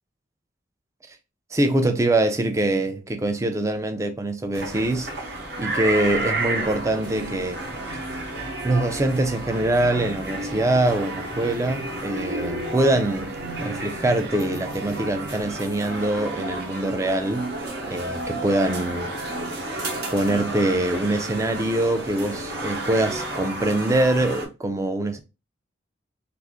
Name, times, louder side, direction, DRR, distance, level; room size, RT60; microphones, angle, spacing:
voice 1, 1.5-5.1 5.6-7.7 8.6-13.3 13.6-17.5 17.9-19.1 20.1-25.2, right 1 dB, 15° right, 0.3 m, -24 dB
sound 1, 4.5-24.5, right 2 dB, 55° right, 0.8 m, -31 dB
2.5 x 2.4 x 3.4 m
head